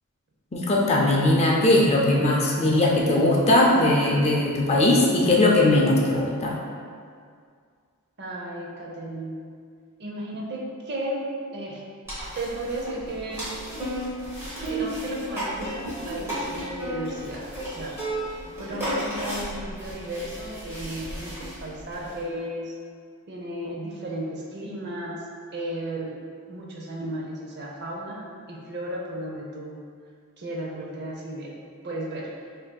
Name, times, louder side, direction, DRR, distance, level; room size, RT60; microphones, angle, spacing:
voice 1, 0.5-6.5, left 1 dB, 30° left, -3 dB, 0.4 m, -20 dB
voice 2, 8.2-9.4 10.0-11.2 11.5-11.8 12.4-13.5 14.7-18.0 18.6-22.7 23.3-25.2 25.5-26.1 26.5-29.8 30.4-31.5 31.8-32.3, right 1 dB, 50° right, -2 dB, 0.6 m, -34 dB
sound 1, 12.1-22.2, right 1 dB, 10° right, 1.1 m, -33 dB
6.0 x 2.6 x 2.2 m, 2.1 s
head